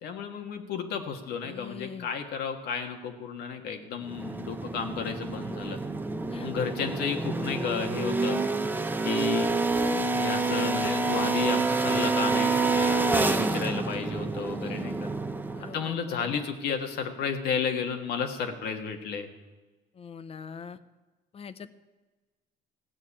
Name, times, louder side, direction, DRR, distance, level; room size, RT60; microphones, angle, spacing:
voice 1, 0.0-5.8 6.4-8.4 9.0-9.5 10.1-15.1 15.7-19.3, left 6 dB, 75° left, 5 dB, 1.6 m, -32 dB
voice 2, 1.4-2.1 6.3-6.5 14.6-15.1 15.5-16.4 19.9-20.8 21.3-21.7, left 6 dB, 35° left, 14 dB, 0.7 m, -43 dB
sound 1, 4.0-15.9, right 3 dB, 10° right, 0.7 m, -28 dB
15.5 x 6.5 x 8.7 m, 1.2 s
cardioid pair, 110°, 17 cm